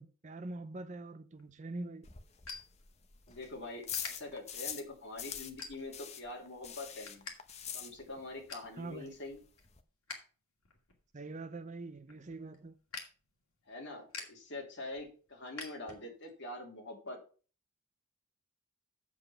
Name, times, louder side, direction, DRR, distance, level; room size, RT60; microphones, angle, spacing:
voice 1, 0.0-2.1 8.8-9.1 11.1-12.8, right 2 dB, 35° right, 0.5 m, -44 dB
sound 1, 1.3-3.4 3.9-4.1 4.7-4.9 5.6-6.1 6.5-7.4 7.6-7.7 8.1-8.7 9.2-10.3 10.6-16.3, left 5 dB, 70° left, 2.5 m, -48 dB
sound 2, 2.0-4.9 5.2-8.4 8.6-8.7 9.1-9.2 9.3-9.8, left 8 dB, 30° left, 0.8 m, -43 dB
voice 2, 3.3-7.3 7.7-9.4 13.7-17.2, left 2 dB, 55° left, 2.8 m, -45 dB
7.8 x 7.2 x 5.6 m
head